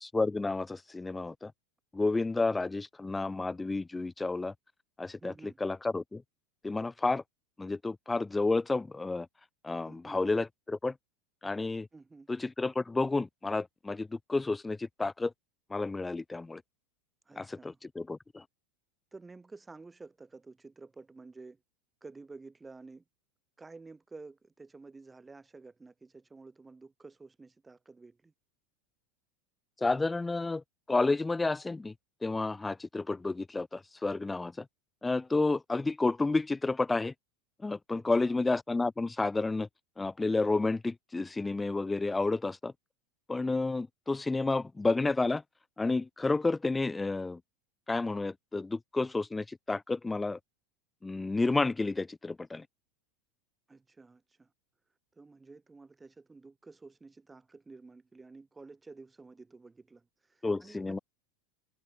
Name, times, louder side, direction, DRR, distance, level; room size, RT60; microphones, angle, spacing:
voice 1, 0.0-1.5 1.9-4.5 5.0-6.2 6.6-7.2 7.6-9.3 9.6-10.9 11.4-11.9 12.3-15.3 15.7-16.6 17.4-18.4 29.8-30.6 30.9-31.9 32.2-34.7 35.0-37.1 37.6-39.7 40.0-42.7 43.3-45.4 45.8-47.4 47.9-50.4 51.0-52.6 60.4-61.0, left 3 dB, 5° left, 0.5 m, -31 dB
voice 2, 5.2-5.6 9.8-10.2 11.9-12.3 17.3-17.8 19.1-21.6 22.0-23.0 23.6-28.3 37.9-38.4 53.7-54.5 55.2-61.0, right 3 dB, 10° right, 1.1 m, -51 dB
supercardioid pair, 165°, 0 cm